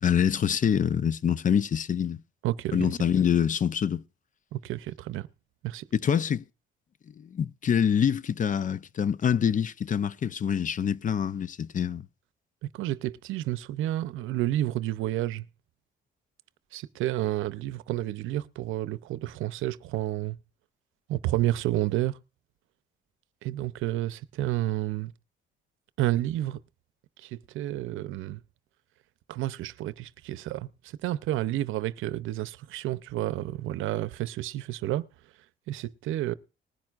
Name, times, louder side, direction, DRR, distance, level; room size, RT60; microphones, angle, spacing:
voice 1, 0.0-2.2 2.7-4.0 5.9-6.4 7.2-12.0, left 8 dB, 40° left, 0.5 m, -25 dB
voice 2, 2.4-2.9 4.5-5.3 5.6-5.9 12.6-15.4 16.7-20.4 21.1-22.2 23.4-25.1 26.0-26.6 27.2-28.4 29.3-30.7 31.0-35.0 35.7-36.4, right 14 dB, 90° right, 0.6 m, -30 dB
20.0 x 10.5 x 2.4 m
cardioid pair, 90°, 20 cm